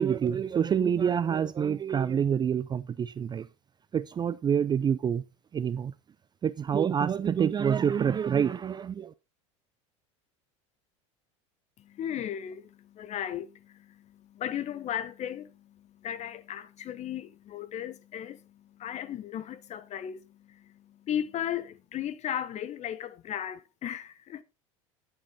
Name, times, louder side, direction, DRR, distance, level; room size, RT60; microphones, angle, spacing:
voice 1, 0.0-3.5 3.9-5.2 5.5-5.9 6.4-9.1, right 8 dB, 25° right, 0.5 m, -27 dB
voice 2, 11.8-24.4, left 10 dB, 45° left, 1.2 m, -36 dB
12.0 x 7.9 x 4.0 m
hypercardioid pair, 85°, 17 cm